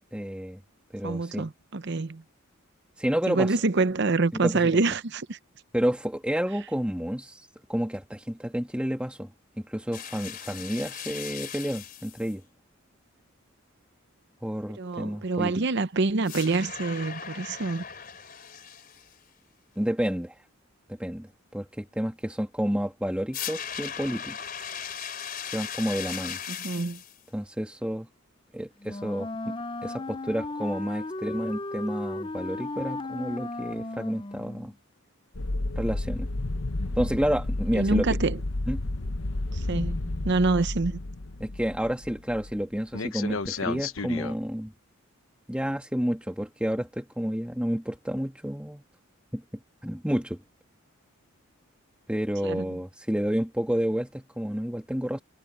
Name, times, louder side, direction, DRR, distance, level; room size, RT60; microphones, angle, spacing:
voice 1, 0.1-0.6 0.9-1.5 3.0-3.5 4.4-4.8 5.7-9.3 9.6-12.4 14.4-15.5 19.8-20.4 20.9-24.4 25.5-26.4 27.3-28.1 28.5-29.5 29.8-34.7 35.8-36.3 37.0-38.1 38.7-38.9 41.4-44.7 45.5-48.8 49.3-49.4 49.8-50.4 52.1-55.2, equal, 5° right, 1.7 m, -30 dB
voice 2, 1.0-2.2 3.3-5.4 14.8-17.8 26.5-27.0 37.7-38.4 39.5-41.0 52.4-52.7, right 3 dB, 55° right, 0.7 m, -26 dB
sound 1, 9.9-12.3 16.2-19.2 23.3-27.2, left 8 dB, 40° left, 4.1 m, -38 dB
Wind instrument woodwind instrument, 28.8-34.7, left 2 dB, 25° left, 0.7 m, -35 dB
sound 2, 35.3-42.6 42.9-44.3, left 2 dB, 70° left, 1.1 m, -31 dB
head